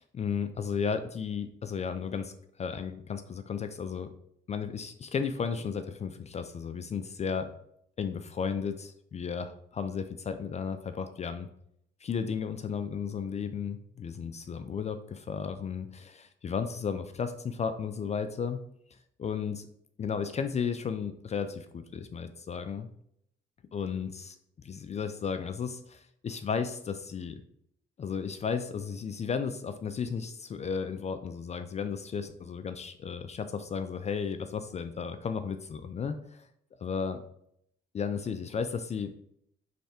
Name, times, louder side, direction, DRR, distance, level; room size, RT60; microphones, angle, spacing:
voice 1, 0.0-2.3 2.6-4.1 4.5-7.5 8.0-11.5 12.0-18.6 19.2-19.7 20.0-22.9 23.7-27.4 28.0-36.5 36.8-37.2 37.9-39.2, left 6 dB, 35° left, 9 dB, 0.3 m, -34 dB
3.4 x 3.3 x 4.2 m, 0.71 s
cardioid pair, 90°, 20 cm